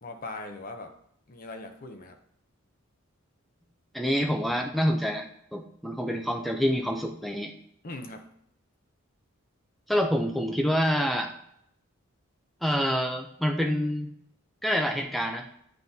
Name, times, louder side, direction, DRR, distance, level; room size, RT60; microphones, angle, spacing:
voice 1, 0.0-0.9 1.3-2.2 7.8-8.3, left 2 dB, 40° left, 5 dB, 0.7 m, -40 dB
voice 2, 3.9-5.3 5.5-7.5 9.9-11.3 12.6-14.1 14.6-15.5, equal, ahead, 3 dB, 0.5 m, -27 dB
9.0 x 4.0 x 2.7 m, 0.71 s
head